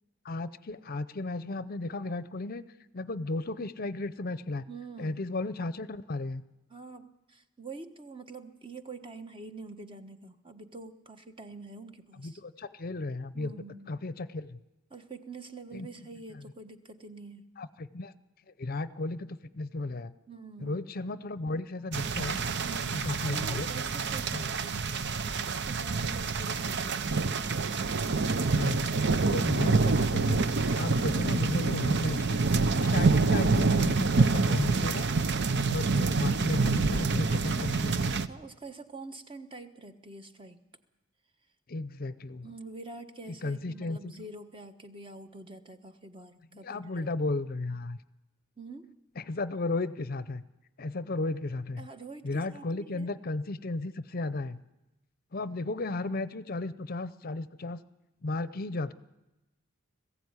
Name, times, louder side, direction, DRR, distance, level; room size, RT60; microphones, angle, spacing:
voice 1, 0.2-2.6 2.9-4.6 5.0-6.4 12.2-13.5 13.9-14.6 15.7-15.9 17.6-18.1 18.6-20.1 20.6-22.4 22.9-23.7 24.3-24.4 28.5-32.4 32.8-35.1 35.6-38.0 41.7-42.5 43.4-44.1 46.6-48.0 49.2-50.4 50.8-51.9 52.2-54.6 55.3-57.8 58.2-58.9, left 2 dB, 45° left, 15 dB, 0.7 m, -34 dB
voice 2, 4.7-5.3 6.7-12.4 13.3-13.9 14.9-17.5 20.3-20.8 22.6-27.0 38.3-40.6 42.4-47.1 48.6-48.9 51.8-53.1, right 3 dB, 25° right, 8 dB, 1.3 m, -46 dB
sound 1, 21.9-38.3, right 4 dB, 55° right, 0.8 m, -27 dB
21.0 x 15.5 x 9.7 m, 1.0 s
head